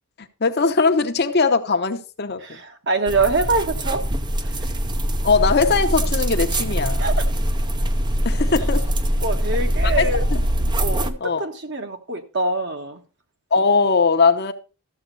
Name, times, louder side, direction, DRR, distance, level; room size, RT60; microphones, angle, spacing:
voice 1, 0.4-2.6 5.2-7.0 8.2-8.8 9.8-10.0 10.3-10.4 11.2-11.4 13.5-14.5, left 4 dB, 45° left, 0.8 m, -20 dB
voice 2, 2.4-4.0 4.4-4.5 7.0-7.3 9.2-10.2 10.8-13.0, right 3 dB, 55° right, 1.3 m, -24 dB
sound 1, 3.1-11.1, equal, 20° right, 0.6 m, -22 dB
13.5 x 7.2 x 4.0 m
head